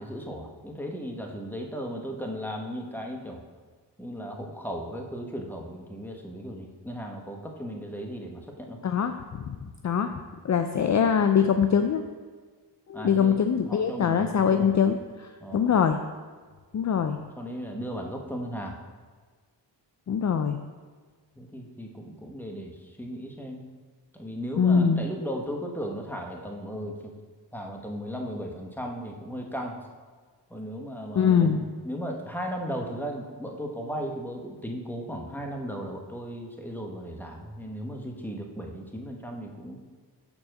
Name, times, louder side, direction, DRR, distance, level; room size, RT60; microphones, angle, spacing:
voice 1, 0.0-3.4 4.0-8.8 12.9-13.4 13.6-14.7 15.4-15.7 17.4-18.8 21.4-23.6 24.1-27.1 27.5-29.8 30.5-39.8, equal, 5° left, 1 dB, 1.2 m, -36 dB
voice 2, 8.8-9.6 9.8-10.1 10.4-12.0 12.9-16.0 16.7-17.2 20.1-20.6 24.6-25.0 31.2-31.6, left 7 dB, 40° left, 7 dB, 0.4 m, -23 dB
7.1 x 4.3 x 6.4 m, 1.5 s
cardioid pair, 75°, 45 cm